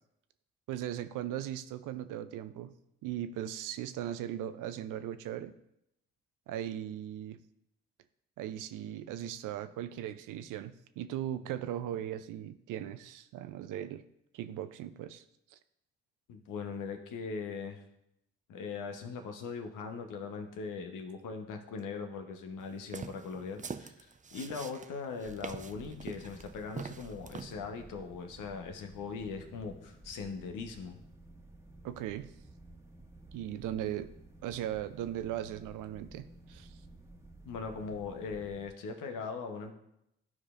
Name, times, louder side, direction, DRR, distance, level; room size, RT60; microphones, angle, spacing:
voice 1, 0.7-2.7 3.0-5.5 6.5-7.4 8.4-14.0 14.3-15.2 15.5-15.6 31.8-32.3 33.3-34.1 34.4-36.7, right 11 dB, 75° right, 12 dB, 0.5 m, -38 dB
voice 2, 16.3-17.8 18.5-31.0 37.4-39.7, left 5 dB, 75° left, 5 dB, 1.0 m, -40 dB
sound 1, 22.8-27.6, right 5 dB, 25° right, 0.5 m, -43 dB
sound 2, 25.2-38.7, right 2 dB, 10° right, 1.3 m, -54 dB
12.5 x 4.8 x 2.5 m, 0.80 s
hypercardioid pair, 40°, 32 cm